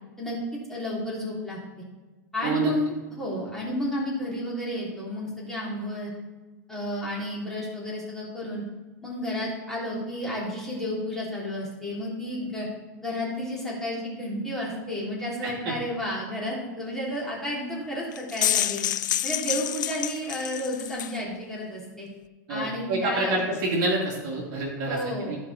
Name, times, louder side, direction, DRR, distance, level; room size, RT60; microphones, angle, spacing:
voice 1, 0.7-1.6 2.3-6.1 6.7-8.6 9.0-12.7 13.0-18.8 19.2-22.1 22.5-23.3 24.8-25.3, left 1 dB, 5° left, -6 dB, 3.3 m, -31 dB
voice 2, 15.4-15.7 22.5-25.4, right 2 dB, 40° right, -2 dB, 2.6 m, -28 dB
sound 1, 18.1-21.2, left 12 dB, 85° left, 0.4 m, -28 dB
14.5 x 5.0 x 4.2 m, 1.2 s
supercardioid pair, 140°, 10 cm